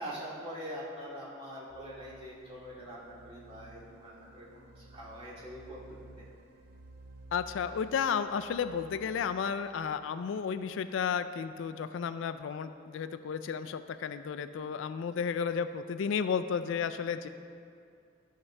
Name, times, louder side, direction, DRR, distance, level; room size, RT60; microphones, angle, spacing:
voice 1, 0.0-6.3, equal, 30° right, -8 dB, 2.2 m, -44 dB
sound 1, 1.7-11.5, right 2 dB, 50° right, 0.5 m, -55 dB
voice 2, 7.3-17.3, left 6 dB, 70° left, 11 dB, 0.3 m, -33 dB
13.0 x 5.9 x 3.2 m, 2.4 s
head